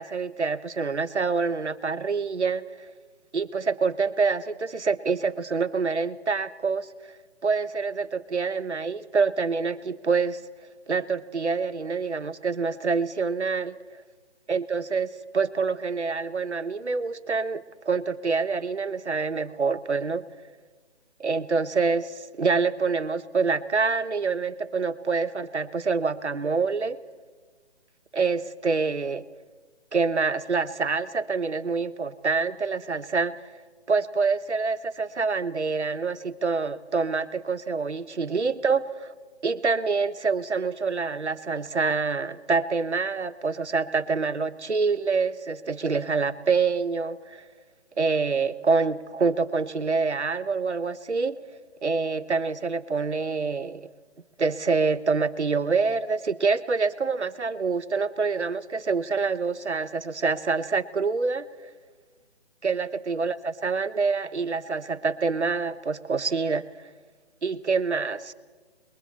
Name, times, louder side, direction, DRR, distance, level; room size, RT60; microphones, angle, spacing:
voice 1, 0.0-2.6 3.3-6.9 7.4-10.4 10.9-13.8 14.5-20.3 21.2-27.0 28.1-29.2 29.9-33.3 33.9-39.1 39.4-47.4 48.0-51.4 51.8-53.9 54.4-61.4 62.6-66.6 67.4-68.3, right 4 dB, 90° right, 13 dB, 1.1 m, -26 dB
28.0 x 22.0 x 4.2 m, 1.4 s
figure-of-eight pair, 145°, 33 cm